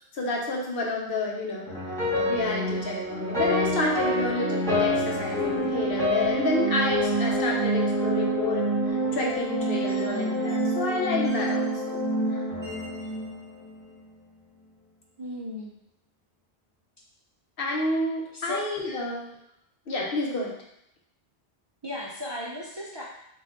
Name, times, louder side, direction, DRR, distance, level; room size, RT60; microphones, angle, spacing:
voice 1, 0.1-1.7 2.2-12.0 12.3-12.4 17.6-19.2 19.9-20.5, left 2 dB, 60° left, -1 dB, 1.0 m, -30 dB
sound 1, 1.7-13.9, equal, 5° left, 1.7 m, -27 dB
voice 2, 15.2-15.7 18.3-18.6 21.8-23.0, left 1 dB, 30° right, -5 dB, 0.5 m, -35 dB
4.7 x 2.6 x 3.7 m, 0.77 s
omnidirectional pair, 1.1 m